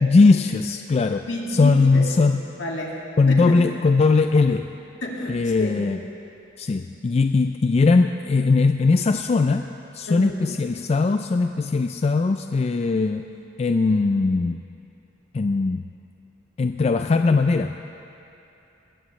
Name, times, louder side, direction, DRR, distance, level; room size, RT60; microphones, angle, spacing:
voice 1, 0.0-2.4 3.2-4.7 5.3-6.0 6.6-13.3 13.6-14.6 15.3-15.8 16.6-17.7, left 3 dB, 35° left, 7 dB, 0.3 m, -20 dB
voice 2, 1.3-2.1 2.6-3.7 5.0-5.8 10.1-10.4, left 1 dB, 70° left, -2 dB, 2.1 m, -30 dB
20.5 x 15.0 x 3.2 m, 2.8 s
head